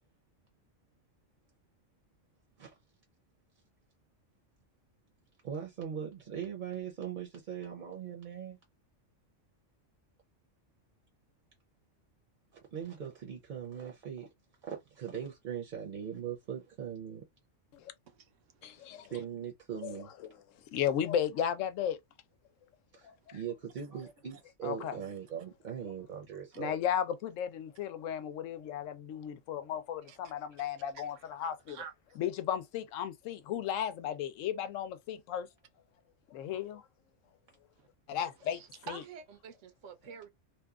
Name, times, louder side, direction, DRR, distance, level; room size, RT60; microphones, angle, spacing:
voice 1, 5.4-8.6 12.7-14.3 14.6-17.2 19.1-20.1 22.9-26.7, right 8 dB, 50° right, 0.7 m, -40 dB
voice 2, 18.6-19.1 19.8-20.3 20.7-22.0 23.0-23.4 24.6-25.0 26.6-31.8 32.2-35.5 36.3-36.8 38.1-39.0 40.1-40.2, left 9 dB, 85° left, 0.9 m, -35 dB
voice 3, 38.5-40.3, right 6 dB, 80° right, 0.9 m, -48 dB
2.8 x 2.2 x 2.3 m
omnidirectional pair, 1.3 m